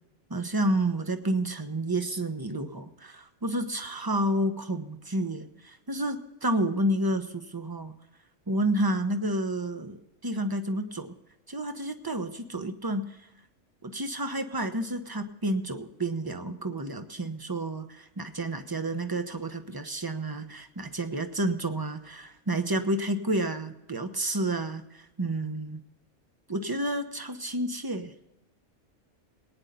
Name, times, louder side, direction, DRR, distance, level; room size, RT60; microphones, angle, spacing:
voice 1, 0.3-7.9 8.5-11.1 11.5-13.1 13.8-25.8 26.5-28.1, right 1 dB, 20° right, 8 dB, 0.9 m, -30 dB
19.5 x 9.8 x 4.0 m, 0.92 s
omnidirectional pair, 1.4 m